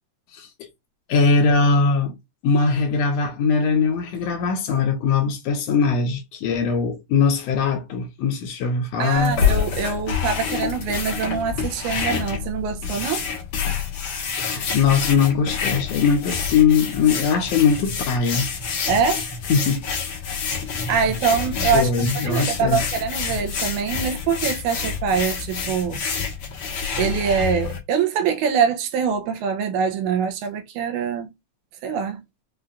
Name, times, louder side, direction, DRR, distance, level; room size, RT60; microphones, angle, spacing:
voice 1, 0.3-0.7 1.1-2.1 2.4-9.4 14.4-18.5 19.5-19.9 21.7-22.9, left 5 dB, 80° left, 1.5 m, -21 dB
voice 2, 9.0-13.3 18.9-19.3 20.9-21.9 22.2-26.0 27.0-31.3 31.8-32.2, right 6 dB, 85° right, 2.0 m, -24 dB
sound 1, 9.2-27.8, left 6 dB, 60° left, 1.6 m, -27 dB
5.5 x 2.3 x 2.5 m
omnidirectional pair, 3.5 m